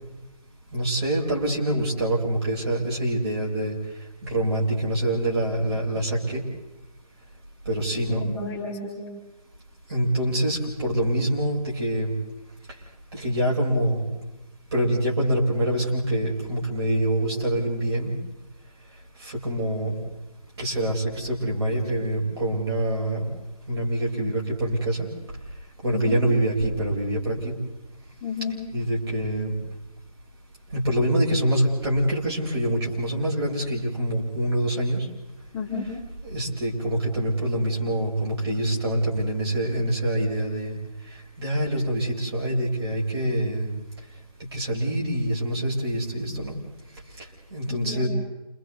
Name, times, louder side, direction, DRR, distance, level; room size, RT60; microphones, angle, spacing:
voice 1, 0.7-3.7 4.2-6.4 7.7-8.2 9.9-12.1 13.1-14.0 14.7-18.1 19.2-19.9 20.6-23.2 23.7-25.1 25.8-27.5 28.7-29.5 30.7-35.1 36.2-40.8 41.4-43.7 44.5-46.6 47.5-48.1, right 1 dB, 45° right, -4 dB, 7.7 m, -25 dB
voice 2, 8.1-9.0 25.9-26.2 28.2-28.6 35.5-35.9 47.7-48.1, left 4 dB, 10° left, -8 dB, 4.8 m, -31 dB
29.5 x 28.0 x 4.2 m, 1.0 s
figure-of-eight pair, 150°, 19 cm